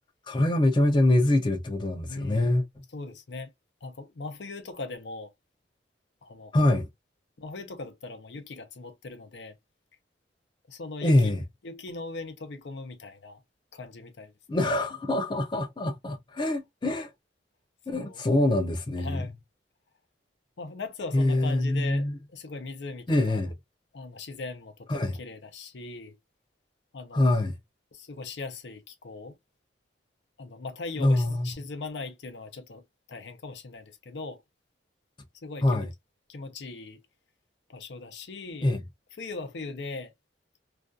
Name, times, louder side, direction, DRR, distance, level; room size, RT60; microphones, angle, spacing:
voice 1, 0.3-2.6 6.5-6.9 11.0-11.4 14.5-17.1 17.9-19.2 21.1-22.2 23.1-23.5 24.9-25.2 27.1-27.6 31.0-31.5 35.6-35.9 38.6-38.8, left 1 dB, 25° left, 0.4 m, -24 dB
voice 2, 2.0-2.6 2.9-3.5 3.8-5.3 6.2-6.6 7.4-9.5 10.7-11.4 11.6-13.4 13.7-14.7 18.0-18.2 19.0-19.3 20.6-23.4 23.9-26.2 26.9-27.3 27.9-29.4 30.4-32.8 33.1-34.4 35.4-35.9 36.3-37.0 37.7-38.7 39.2-40.1, left 3 dB, 75° left, 0.6 m, -39 dB
2.4 x 2.3 x 2.4 m
head